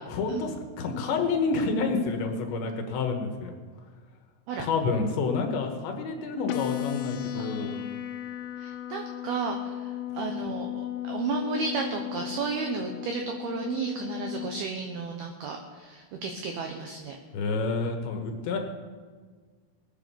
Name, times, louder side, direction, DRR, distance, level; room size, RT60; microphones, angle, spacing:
voice 1, 0.1-3.5 4.6-7.7 17.3-18.6, left 4 dB, 70° left, 4 dB, 3.3 m, -29 dB
sound 1, 6.5-14.5, left 13 dB, 85° left, 3.6 m, -35 dB
voice 2, 7.4-8.0 8.6-17.2, right 5 dB, 80° right, 3 dB, 2.2 m, -33 dB
19.5 x 9.2 x 6.9 m, 1.5 s
omnidirectional pair, 5.8 m